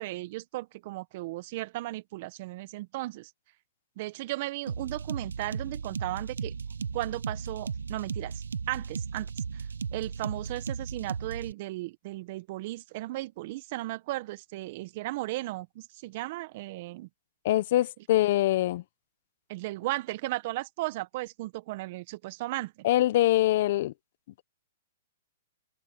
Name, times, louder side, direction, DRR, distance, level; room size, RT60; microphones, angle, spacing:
voice 1, 0.0-3.3 4.0-6.5 6.9-9.7 9.9-17.1 19.5-22.7, right 18 dB, 50° right, 1.5 m, -36 dB
sound 1, 4.7-11.5, right 6 dB, 85° right, 1.1 m, -36 dB
voice 2, 17.4-18.8 22.8-23.9, left 15 dB, 55° left, 1.2 m, -24 dB
open air
hypercardioid pair, 125°, 0 cm